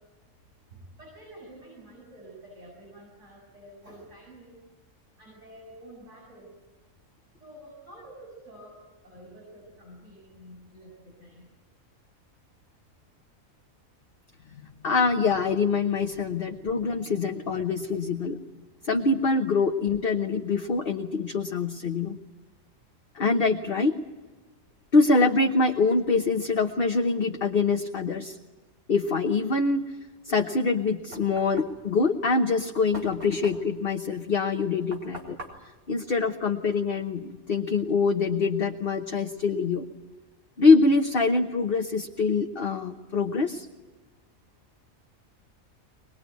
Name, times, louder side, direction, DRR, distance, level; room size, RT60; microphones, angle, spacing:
voice 1, 0.7-4.6 5.2-6.5 7.4-8.8 9.0-11.5, right 1 dB, 55° right, -3 dB, 8.3 m, -48 dB
voice 2, 14.8-18.4 18.8-22.2 23.1-23.9 24.9-28.4 28.9-29.8 30.2-35.4 35.9-39.8 40.6-43.7, left 4 dB, 45° left, 4 dB, 1.2 m, -24 dB
Knock, 30.6-37.0, right 1 dB, 90° right, 4.6 m, -46 dB
24.0 x 21.0 x 9.3 m, 1.2 s
omnidirectional pair, 1.5 m